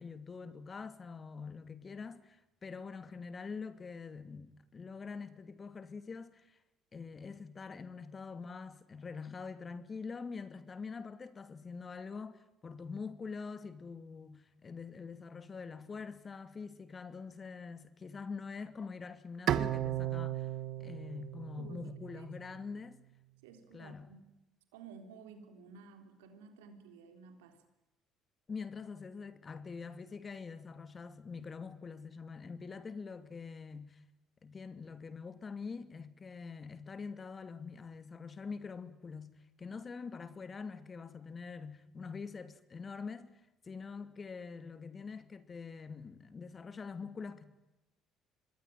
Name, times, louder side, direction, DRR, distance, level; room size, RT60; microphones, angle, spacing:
voice 1, 0.0-6.6 6.9-20.5 20.8-23.0 23.7-24.1 28.5-34.0 34.4-47.5, left 5 dB, 35° left, 2.5 m, -45 dB
Bowed string instrument, 19.5-22.7, right 12 dB, 60° right, 1.3 m, -36 dB
voice 2, 21.6-22.3 23.4-24.3 24.7-27.6, right 5 dB, 80° right, 4.0 m, -53 dB
26.0 x 21.0 x 9.2 m
hypercardioid pair, 60°, 0 cm